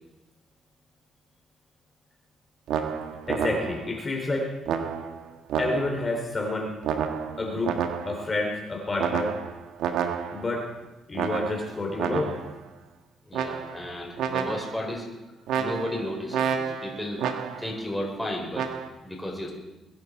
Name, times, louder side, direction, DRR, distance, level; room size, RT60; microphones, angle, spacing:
sound 1, 2.7-4.0 4.7-6.1 6.8-8.3 9.0-10.6 11.1-12.6 13.3-13.9 14.2-14.9 15.5-17.8 18.5-18.9, right 7 dB, 85° right, 1.4 m, -30 dB
voice 1, 3.3-4.5 5.6-6.7 7.4-7.7 8.0-9.4 10.3-10.7 11.1-12.4, left 2 dB, 30° left, 1 dB, 3.3 m, -29 dB
voice 2, 13.3-15.0 15.6-17.2 17.6-18.7 19.0-19.5, left 1 dB, 5° left, -1 dB, 4.7 m, -33 dB
22.0 x 10.5 x 4.7 m, 1.0 s
cardioid pair, 90°, 0 cm